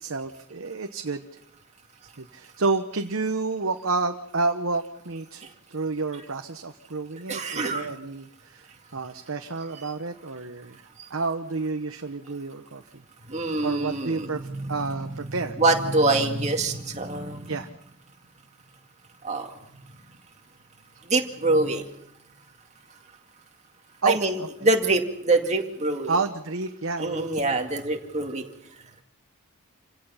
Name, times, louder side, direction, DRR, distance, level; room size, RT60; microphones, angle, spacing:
voice 1, 0.0-1.2 2.2-5.4 5.7-10.8 11.1-12.8 13.6-14.4 14.7-15.6 17.5-17.7 24.0-24.5 26.1-27.3, right 3 dB, 65° right, 5 dB, 1.0 m, -29 dB
voice 2, 7.3-7.9 11.0-11.1 13.3-14.8 15.6-17.5 19.2-19.5 21.0-21.9 24.1-26.2 27.0-28.5, right 2 dB, 30° right, 3 dB, 2.2 m, -25 dB
28.0 x 17.0 x 5.7 m, 0.76 s
head